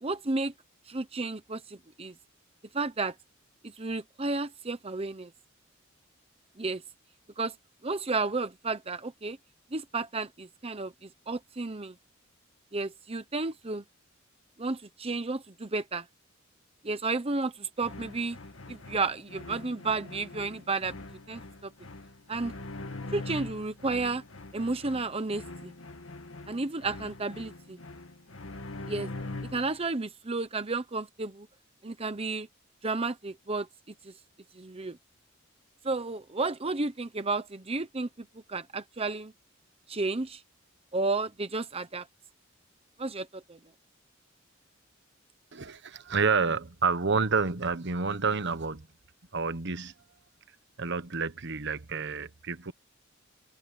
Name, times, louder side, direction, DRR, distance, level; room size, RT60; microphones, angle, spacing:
voice 1, 0.0-0.5 0.9-2.1 2.7-3.1 3.6-5.3 6.6-6.8 7.4-7.5 7.8-9.4 9.7-11.9 12.7-13.8 14.6-16.1 16.8-18.4 18.7-21.0 21.3-21.7 22.3-22.5 23.1-24.2 24.5-25.7 26.5-27.8 28.9-29.1 29.5-31.5 31.8-32.5 32.8-33.7 34.0-34.1 34.5-35.0 35.8-39.3 39.9-40.4 40.9-42.1 43.0-43.6, right 3 dB, 30° right, 0.9 m, -32 dB
sound 1, 17.8-29.8, left 2 dB, 75° left, 1.9 m, -43 dB
voice 2, 45.5-48.9 49.3-49.9 50.8-52.7, right 5 dB, 60° right, 1.2 m, -29 dB
head